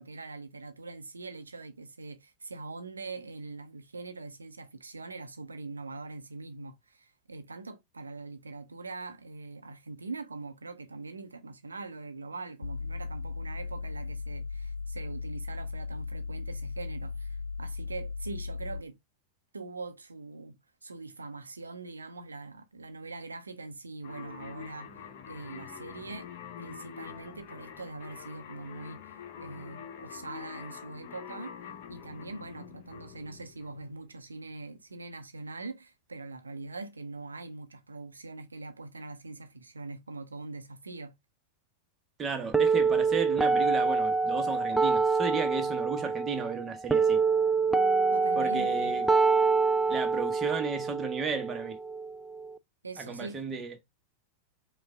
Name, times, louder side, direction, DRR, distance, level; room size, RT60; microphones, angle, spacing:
voice 1, 0.0-18.9 19.5-20.6 20.8-24.9 25.3-26.3 26.6-31.5 31.9-41.1 48.1-49.0 52.8-53.4, right 3 dB, 75° right, 0.7 m, -42 dB
sound 1, 12.6-18.8, left 4 dB, 70° left, 0.5 m, -37 dB
sound 2, 24.0-34.2, left 8 dB, 50° left, 0.9 m, -46 dB
voice 2, 42.2-47.2 48.3-49.1 49.9-51.8 53.0-53.7, right 5 dB, 20° right, 1.1 m, -34 dB
sound 3, 42.5-52.5, right 4 dB, 5° right, 0.4 m, -26 dB
5.2 x 2.4 x 3.5 m
figure-of-eight pair, 90°, 0 cm